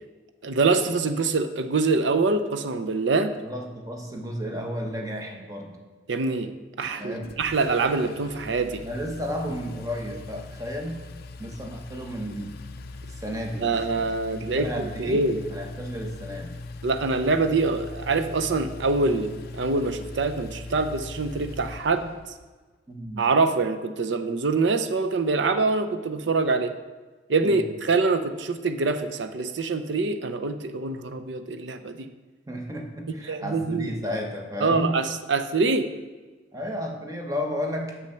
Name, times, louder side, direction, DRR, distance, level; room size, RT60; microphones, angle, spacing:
voice 1, 0.4-3.3 6.1-6.5 6.8-8.8 13.6-15.4 16.8-22.1 23.2-26.7 27.3-32.1 33.3-33.9 34.6-35.9, right 3 dB, 70° right, 8 dB, 0.6 m, -25 dB
voice 2, 3.4-5.7 7.0-7.3 8.8-11.0 11.4-12.5 13.2-15.2 15.5-16.5 22.9-23.3 27.4-27.7 32.5-34.9 36.5-38.1, equal, 20° right, 2 dB, 1.0 m, -33 dB
Engine, 6.8-22.5, left 2 dB, 55° left, 0.4 m, -41 dB
6.3 x 6.2 x 5.7 m, 1.3 s
head